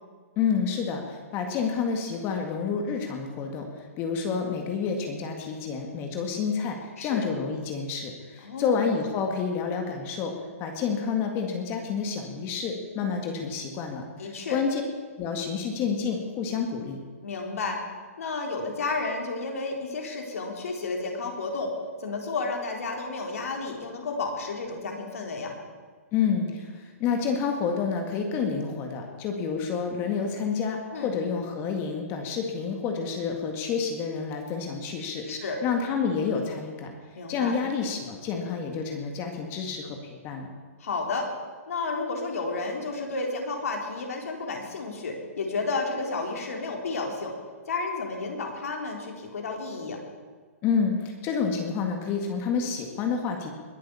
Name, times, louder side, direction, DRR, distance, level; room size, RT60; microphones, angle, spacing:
voice 1, 0.4-10.3 10.6-14.8 15.2-17.0 26.1-36.9 37.3-40.5 50.6-53.5, left 6 dB, 30° left, 3 dB, 1.9 m, -29 dB
voice 2, 8.4-8.9 14.2-14.6 17.2-17.8 18.2-21.7 22.0-25.6 30.9-31.1 35.3-35.6 37.2-37.6 40.8-41.3 41.7-47.3 47.7-50.0, left 3 dB, 70° left, 1 dB, 3.8 m, -31 dB
21.0 x 7.7 x 7.0 m, 1.5 s
hypercardioid pair, 140°, 8 cm